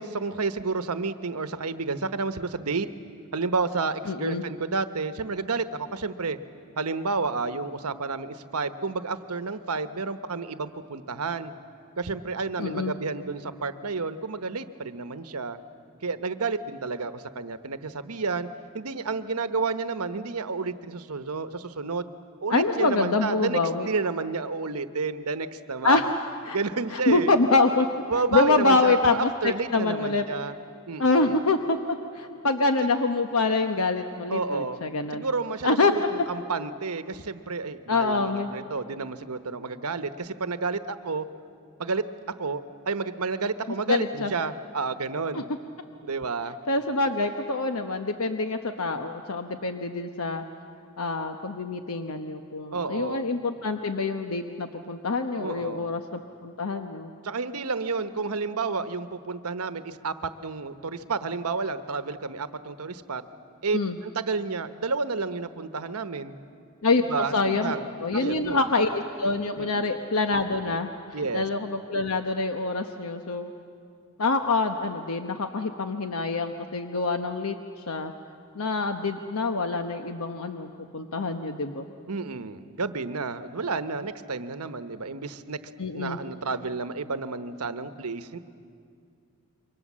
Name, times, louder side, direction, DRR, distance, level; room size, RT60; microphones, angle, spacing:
voice 1, 0.0-2.9 3.3-6.4 6.8-11.5 12.0-15.6 16.0-18.5 18.7-22.1 22.4-26.1 26.5-27.3 28.1-30.5 30.9-31.4 34.3-34.8 35.1-35.8 36.1-41.3 41.8-45.5 46.0-46.6 52.7-53.2 55.4-55.9 57.2-63.2 63.6-66.4 67.1-68.6 69.6-69.9 71.1-71.4 82.1-85.6 85.9-88.4, right 4 dB, 85° right, 11 dB, 1.1 m, -30 dB
voice 2, 4.1-4.4 12.6-12.9 22.5-23.9 25.8-26.1 26.4-26.6 26.9-27.9 28.3-30.3 31.0-31.8 32.1-35.2 35.6-35.9 37.9-38.5 43.9-44.3 45.3-45.4 46.7-50.4 51.0-57.1 63.7-64.0 66.8-67.7 68.0-70.9 71.3-73.5 74.2-77.5 77.9-78.1 78.5-81.8 85.8-86.2, left 3 dB, 75° left, 6 dB, 1.0 m, -25 dB
28.0 x 24.0 x 7.5 m, 2.3 s
head